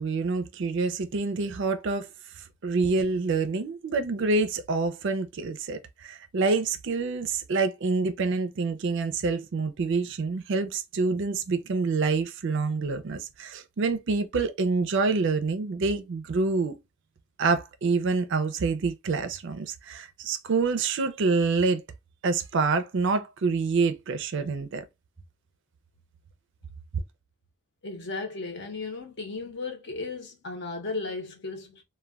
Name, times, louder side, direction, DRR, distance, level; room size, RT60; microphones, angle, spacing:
voice 1, 0.0-2.1 2.4-16.8 17.4-21.8 22.2-24.8, right 4 dB, 55° right, 0.4 m, -27 dB
voice 2, 27.8-31.8, left 3 dB, 50° left, 0.7 m, -35 dB
2.2 x 2.1 x 3.4 m
head